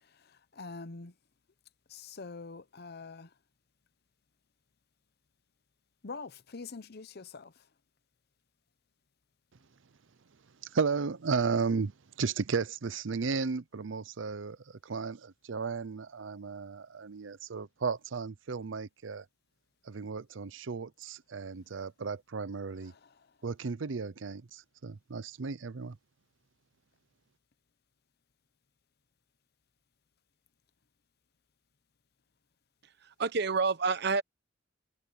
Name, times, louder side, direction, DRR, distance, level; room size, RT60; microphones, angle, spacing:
voice 1, 0.0-1.1 1.9-3.3 6.0-7.6 22.8-23.3, left 4 dB, 55° left, 0.8 m, -45 dB
voice 2, 10.6-11.9 12.2-19.3 19.8-22.9 23.4-26.0, right 5 dB, 85° right, 0.6 m, -34 dB
voice 3, 33.0-34.2, right 4 dB, 60° right, 0.9 m, -28 dB
head